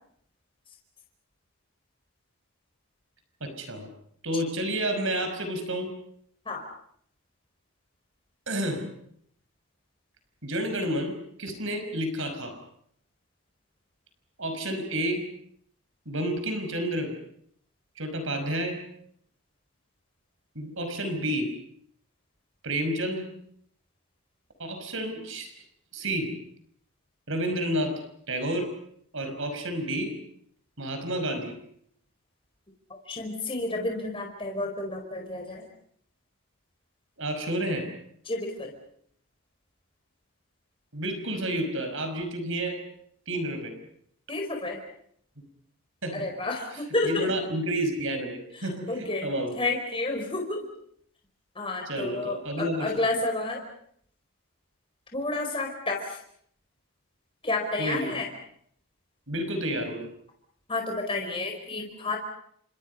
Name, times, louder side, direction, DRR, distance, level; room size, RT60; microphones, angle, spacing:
voice 1, 3.4-3.9 4.2-6.0 8.5-8.9 10.4-12.6 14.4-15.3 16.1-17.2 18.0-18.8 20.6-21.6 22.6-23.3 24.6-25.5 25.9-26.4 27.3-28.0 28.3-28.7 29.1-30.2 30.8-31.6 37.2-38.0 40.9-42.8 43.3-43.7 46.0-46.3 46.7-49.6 51.9-53.0 57.8-58.2 59.3-60.1, right 1 dB, 60° right, 7 dB, 5.5 m, -30 dB
voice 2, 33.1-35.6 38.3-38.7 44.3-44.8 46.1-47.3 48.9-49.3 49.5-50.6 51.6-53.6 55.1-56.2 57.4-58.3 60.7-62.2, left 2 dB, 25° left, 2 dB, 4.5 m, -30 dB
30.0 x 26.0 x 5.5 m, 0.67 s
head